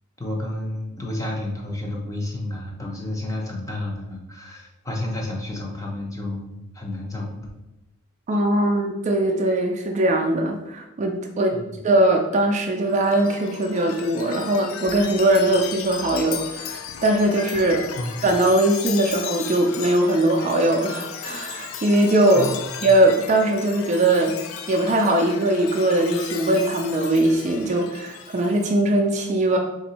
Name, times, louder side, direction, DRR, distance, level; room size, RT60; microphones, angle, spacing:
voice 1, 0.2-7.5 11.5-11.8 17.9-18.2 22.3-22.9, left 1 dB, 15° left, -1 dB, 0.7 m, -31 dB
voice 2, 8.3-17.9 18.2-22.5 22.8-24.4 24.7-29.6, right 1 dB, 35° right, 1 dB, 0.4 m, -20 dB
Chime, 12.8-28.7, left 8 dB, 70° left, 0.3 m, -36 dB
3.7 x 2.6 x 4.1 m, 0.95 s
head